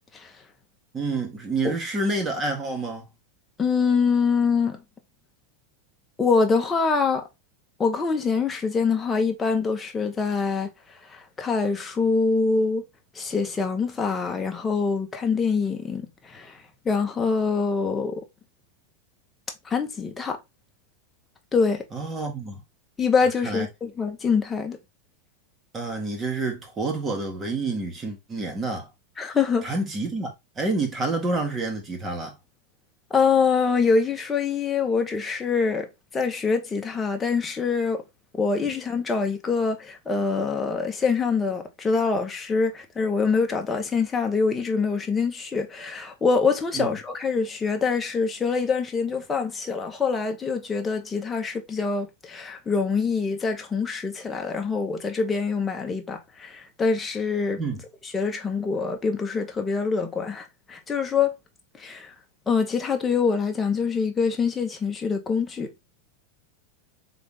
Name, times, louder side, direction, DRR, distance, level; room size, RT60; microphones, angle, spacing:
voice 1, 0.9-3.0 21.9-22.6 23.4-23.7 25.7-28.9 29.6-32.3 46.7-46.9 57.6-57.8, right 3 dB, 20° right, 1.7 m, -28 dB
voice 2, 3.6-4.8 6.2-7.2 7.8-10.7 11.1-12.8 13.1-16.6 16.8-18.2 19.6-20.4 21.5-21.8 23.0-24.8 29.2-29.7 33.1-35.9 36.1-38.0 38.3-57.6 58.1-61.3 61.8-62.1 62.5-65.7, left 5 dB, 15° left, 1.1 m, -25 dB
4.0 x 3.4 x 3.6 m
supercardioid pair, 130°, 0 cm